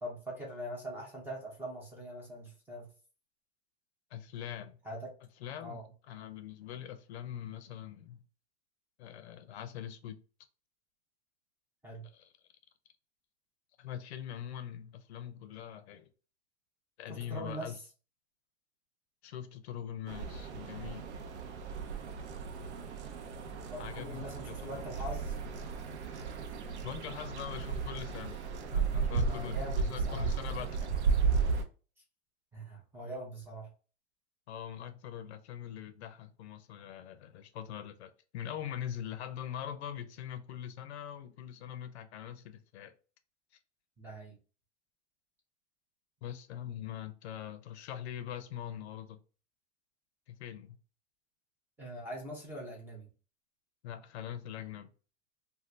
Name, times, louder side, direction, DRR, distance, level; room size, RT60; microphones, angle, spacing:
voice 1, 0.0-2.9 4.8-5.1 5.6-5.8 11.8-12.1 17.1-17.7 23.7-25.4 29.3-30.3 32.5-33.7 44.0-44.4 51.8-53.1, equal, 5° right, 0.5 m, -42 dB
voice 2, 4.1-4.8 5.4-8.2 9.0-10.2 12.1-12.3 13.8-16.1 17.0-17.8 19.2-21.1 23.8-24.8 26.8-30.8 34.5-42.9 46.2-49.2 50.3-50.8 53.8-54.9, left 10 dB, 70° left, 0.6 m, -43 dB
sound 1, 20.1-31.6, right 5 dB, 80° right, 0.7 m, -34 dB
2.7 x 2.4 x 3.2 m
supercardioid pair, 150°, 34 cm